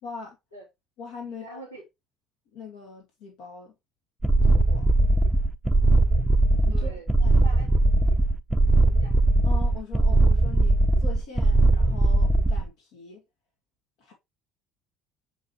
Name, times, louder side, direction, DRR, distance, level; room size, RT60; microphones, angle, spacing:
voice 1, 0.0-0.4 1.0-1.6 2.5-3.7 4.4-4.9 6.6-7.4 9.4-13.2 14.0-14.1, left 4 dB, 65° left, 2.2 m, -42 dB
voice 2, 1.2-1.8 5.2-5.3 6.7-7.0 7.3-7.7 8.0-8.2 8.6-9.2, right 2 dB, 90° left, 3.1 m, -44 dB
sound 1, 4.2-12.7, right 2 dB, 10° right, 0.7 m, -20 dB
7.4 x 5.1 x 3.0 m
figure-of-eight pair, 55°, 0 cm